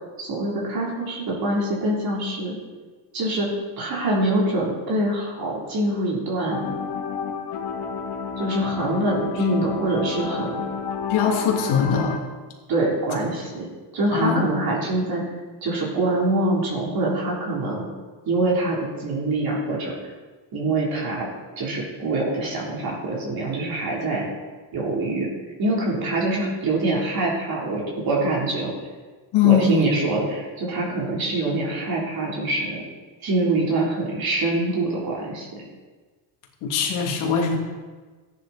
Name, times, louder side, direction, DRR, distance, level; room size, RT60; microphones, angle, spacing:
voice 1, 0.2-2.6 3.1-6.8 8.4-10.6 12.7-13.7 13.9-15.2 15.6-17.9 18.3-19.9 20.5-21.3 21.6-24.3 24.7-25.3 25.6-28.7 29.4-32.8 33.2-35.6, right 2 dB, 45° right, -4 dB, 3.9 m, -24 dB
sound 1, 6.5-12.2, left 6 dB, 50° left, 2.3 m, -30 dB
voice 2, 11.1-12.2 14.1-14.4 29.3-29.9 36.6-37.6, left 6 dB, 75° left, 0 dB, 2.9 m, -21 dB
14.5 x 10.0 x 4.3 m, 1.4 s
cardioid pair, 120°, 48 cm